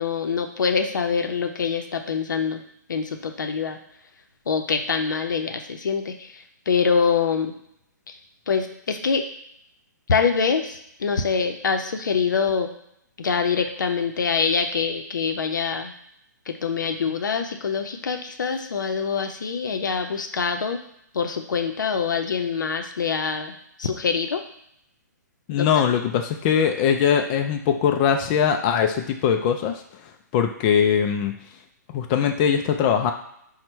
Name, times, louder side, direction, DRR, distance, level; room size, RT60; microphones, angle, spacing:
voice 1, 0.0-2.6 2.9-3.8 4.5-7.5 8.1-8.2 8.5-9.2 10.1-12.7 13.2-15.9 16.5-20.8 21.1-24.4 25.6-25.8, left 5 dB, 80° left, 5 dB, 0.6 m, -25 dB
voice 2, 25.5-29.8 30.3-31.3 31.9-33.1, left 8 dB, 30° left, 4 dB, 0.3 m, -21 dB
4.3 x 2.1 x 4.3 m, 0.75 s
hypercardioid pair, 140°, 10 cm